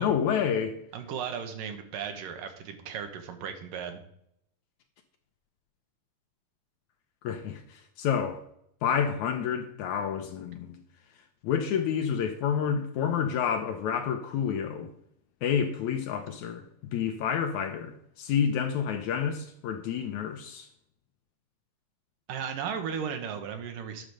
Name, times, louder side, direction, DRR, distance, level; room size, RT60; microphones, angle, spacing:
voice 1, 0.0-0.8 7.2-8.4 8.8-10.8 11.4-14.9 15.4-16.6 16.9-20.7, left 7 dB, 75° left, 1.8 m, -29 dB
voice 2, 0.9-4.0 22.3-24.1, right 7 dB, 75° right, 2.7 m, -36 dB
9.7 x 5.1 x 6.3 m
omnidirectional pair, 4.1 m